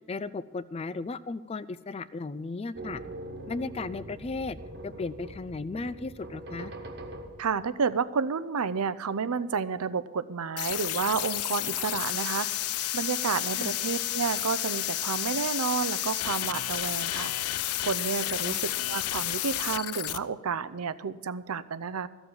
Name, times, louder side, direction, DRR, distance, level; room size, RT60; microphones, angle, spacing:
voice 1, 0.1-3.0 3.5-4.6 4.8-6.7 13.6-13.7 18.4-18.6, left 3 dB, 25° left, 16 dB, 0.3 m, -35 dB
sound 1, 2.7-7.8, right 1 dB, 50° right, 1.3 m, -42 dB
voice 2, 7.4-12.6 12.9-17.5 17.8-18.6 18.9-22.1, right 5 dB, 85° right, 15 dB, 0.6 m, -30 dB
sound 2, 10.6-20.2, left 14 dB, 90° left, 0.5 m, -31 dB
14.5 x 7.1 x 8.6 m, 1.4 s
head